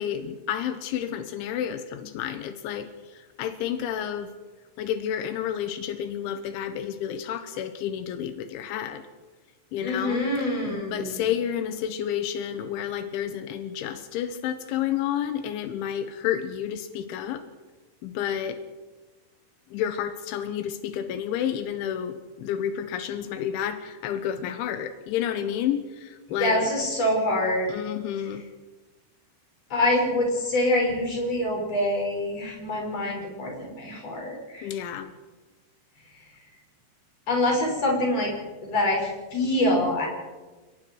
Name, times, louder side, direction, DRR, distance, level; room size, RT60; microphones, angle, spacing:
voice 1, 0.0-2.9 3.4-4.3 4.8-9.0 9.7-10.3 10.7-17.4 18.0-18.6 19.7-26.7 27.7-28.4 34.6-35.1, left 9 dB, 90° left, 9 dB, 3.5 m, -30 dB
voice 2, 9.8-11.2 26.3-27.7 29.7-34.7 37.3-38.3 38.6-40.1, left 1 dB, 35° left, -1 dB, 6.8 m, -25 dB
30.0 x 19.0 x 4.7 m, 1.2 s
omnidirectional pair, 5.3 m